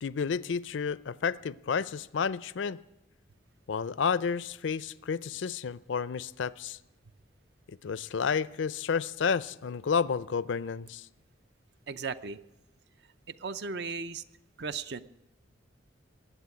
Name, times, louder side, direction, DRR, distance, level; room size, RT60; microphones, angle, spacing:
voice 1, 0.0-2.8 3.7-6.8 7.7-11.0, left 6 dB, 75° left, 19 dB, 0.5 m, -31 dB
voice 2, 11.9-12.4 13.4-14.2 14.6-15.0, right 4 dB, 60° right, 13 dB, 0.6 m, -36 dB
20.0 x 8.4 x 8.4 m, 0.91 s
head